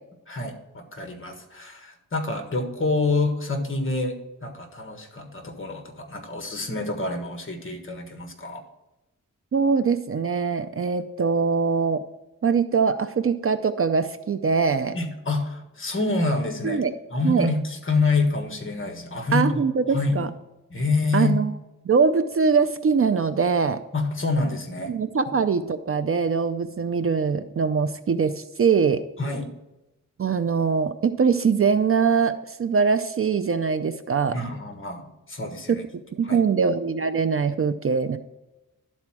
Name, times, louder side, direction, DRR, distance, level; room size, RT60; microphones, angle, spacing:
voice 1, 0.3-8.6 14.9-16.8 17.1-19.6 19.9-20.3 20.7-21.4 23.9-24.9 29.2-29.5 34.3-35.8 36.2-36.4, left 3 dB, 40° left, 4 dB, 1.5 m, -27 dB
voice 2, 9.5-12.0 12.4-15.0 16.6-16.9 17.2-17.5 19.3-20.3 21.1-21.5 21.9-23.8 24.9-29.0 30.2-34.4 35.7-35.8 36.2-38.2, right 5 dB, 45° right, 10 dB, 0.5 m, -22 dB
11.5 x 4.3 x 6.0 m, 0.98 s
wide cardioid pair, 105°, 33 cm